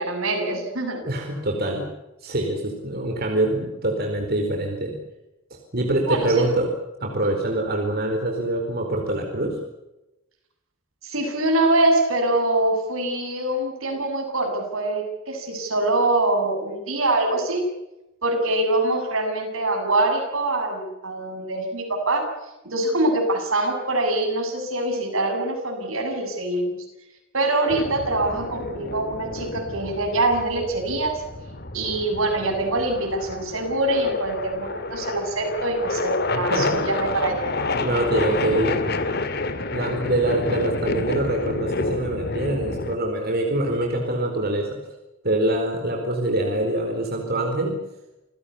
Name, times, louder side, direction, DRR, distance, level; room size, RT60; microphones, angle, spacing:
voice 1, 0.0-1.0 6.1-6.6 11.0-17.6 18.2-22.2 22.6-26.8 27.3-31.2 31.7-37.4, right 2 dB, 80° right, 3 dB, 7.9 m, -24 dB
voice 2, 1.0-1.8 2.2-5.0 5.5-6.7 7.0-9.6 36.3-36.8 37.8-38.8 39.7-44.8 45.2-47.8, right 1 dB, 50° right, 2 dB, 4.6 m, -24 dB
sound 1, 27.7-43.0, left 2 dB, 50° left, 2.4 m, -29 dB
28.5 x 16.5 x 8.4 m, 0.96 s
head